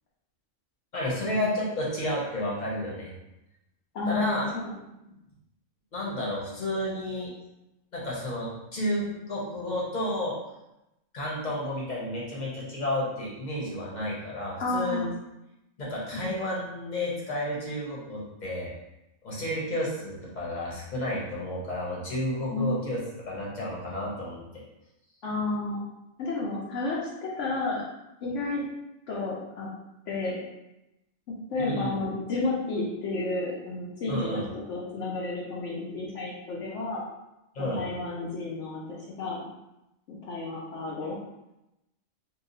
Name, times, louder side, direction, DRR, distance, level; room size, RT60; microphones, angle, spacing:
voice 1, 0.9-3.1 4.1-4.5 5.9-7.3 7.9-10.4 11.1-15.1 15.8-18.7 19.2-23.0 23.3-24.6 31.6-31.9 34.1-34.5 37.5-37.8, left 1 dB, 40° left, -5 dB, 0.9 m, -31 dB
voice 2, 3.9-4.7 14.6-15.1 16.1-16.3 22.5-22.7 25.2-25.8 26.2-27.8 28.2-28.6 29.1-29.7 30.1-30.4 31.5-37.0 37.6-39.5 40.1-41.2, left 2 dB, 70° left, -5 dB, 1.0 m, -31 dB
2.8 x 2.3 x 3.8 m, 0.91 s
omnidirectional pair, 1.4 m